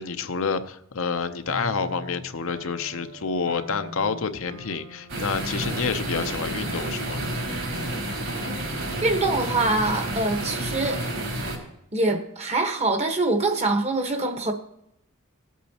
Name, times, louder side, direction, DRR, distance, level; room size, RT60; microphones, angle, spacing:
voice 1, 0.0-7.2, left 5 dB, 65° left, 9 dB, 0.7 m, -28 dB
sound 1, 1.5-9.3, equal, 85° right, 2.3 m, -42 dB
sound 2, 5.1-11.6, right 1 dB, 60° right, 4.2 m, -30 dB
voice 2, 9.0-11.0 11.9-14.5, right 2 dB, 30° right, 5 dB, 1.2 m, -24 dB
19.0 x 8.4 x 2.9 m, 0.76 s
head